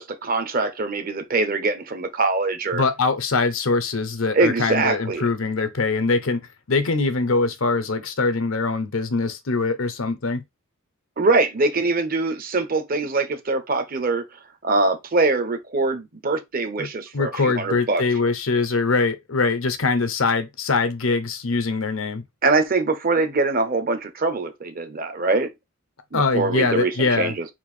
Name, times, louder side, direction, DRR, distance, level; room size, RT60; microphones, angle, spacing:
voice 1, 0.0-2.8 4.3-5.2 11.2-14.2 14.6-18.0 22.4-25.5 26.1-27.5, right 3 dB, 45° right, 0.9 m, -23 dB
voice 2, 2.7-6.4 6.7-10.4 16.8-16.9 17.1-22.2 26.1-27.3, left 3 dB, 80° left, 0.8 m, -23 dB
4.4 x 2.6 x 4.3 m
head